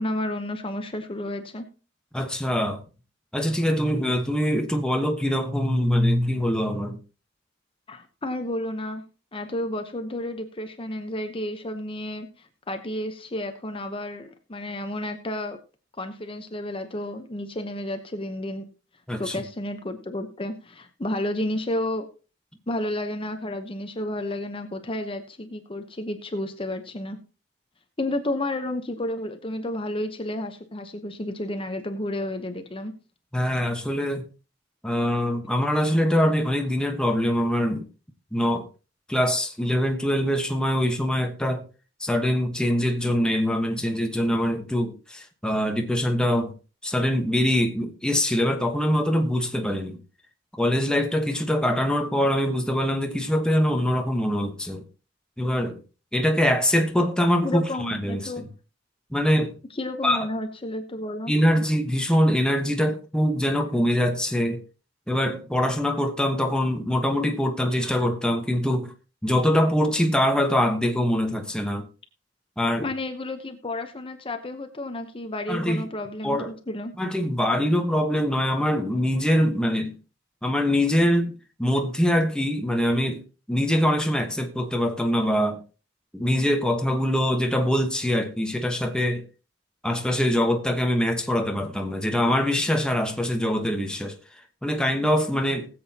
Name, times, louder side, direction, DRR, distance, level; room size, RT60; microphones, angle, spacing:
voice 1, 0.0-1.7 7.9-9.0 9.3-15.6 16.0-18.7 19.2-22.0 22.7-27.2 28.0-32.9 57.4-58.4 59.7-61.3 72.8-76.9, left 1 dB, 30° left, 0.9 m, -31 dB
voice 2, 2.1-2.8 3.3-7.0 19.1-19.4 33.3-34.2 34.8-37.9 38.3-38.6 39.1-41.6 42.0-46.5 46.8-50.0 50.6-54.8 55.4-55.8 56.1-58.5 59.1-59.6 60.0-60.2 61.3-64.6 65.1-68.9 69.2-71.9 72.6-72.9 75.5-75.8 76.2-76.5 77.0-79.9 80.4-81.3 81.6-83.2 83.5-85.6 86.1-89.2 89.8-94.2 94.6-95.7, equal, 5° left, 1.2 m, -23 dB
20.0 x 7.8 x 2.9 m
head